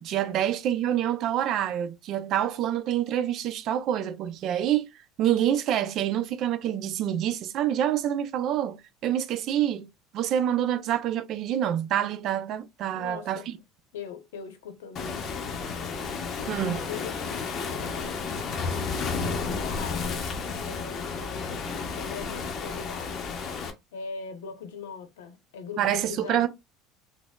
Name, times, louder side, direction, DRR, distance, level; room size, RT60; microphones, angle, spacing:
voice 1, 0.0-4.9 5.2-9.9 10.1-13.6 16.5-16.8 25.8-26.5, right 10 dB, 55° right, 0.4 m, -27 dB
voice 2, 12.9-13.6 13.9-15.5 16.3-16.6 16.9-18.9 19.3-20.3 20.6-21.6 21.9-26.5, left 6 dB, 90° left, 0.7 m, -41 dB
Waves surf, 15.0-23.7, left 5 dB, 45° left, 0.7 m, -32 dB
4.0 x 2.0 x 2.2 m
supercardioid pair, 95°, 0 cm